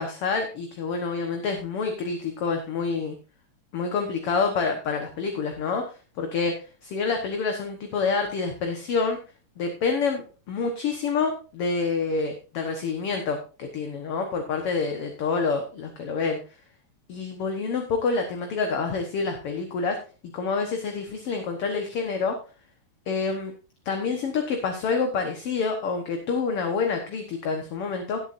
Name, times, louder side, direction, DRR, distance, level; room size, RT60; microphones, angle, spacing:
voice 1, 0.0-3.2 3.7-9.2 9.6-16.4 17.1-20.0 20.3-22.4 23.1-23.5 23.9-28.2, left 4 dB, 55° left, 4 dB, 2.1 m, -27 dB
18.0 x 8.2 x 2.6 m, 0.35 s
omnidirectional pair, 3.3 m